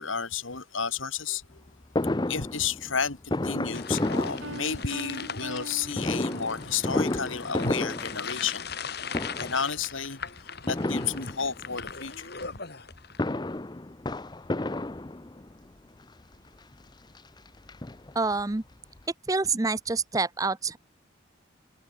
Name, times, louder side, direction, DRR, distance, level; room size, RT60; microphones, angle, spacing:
voice 1, 0.0-1.6 2.3-8.8 9.4-10.2 10.6-12.3, left 6 dB, 80° left, 2.8 m, -32 dB
Fireworks, 2.0-5.1 5.9-8.8 9.1-9.7 10.7-11.8 12.9-15.6 16.3-16.4 16.7-16.8 17.1-18.4 18.7-18.8 19.0-19.1, left 1 dB, 20° left, 0.6 m, -31 dB
sound 1, 3.7-13.3, left 6 dB, 50° left, 3.0 m, -40 dB
Piano, 4.4-6.9, right 2 dB, 70° right, 5.9 m, -42 dB
voice 2, 18.1-18.6 19.3-20.8, right 3 dB, 15° right, 0.5 m, -27 dB
head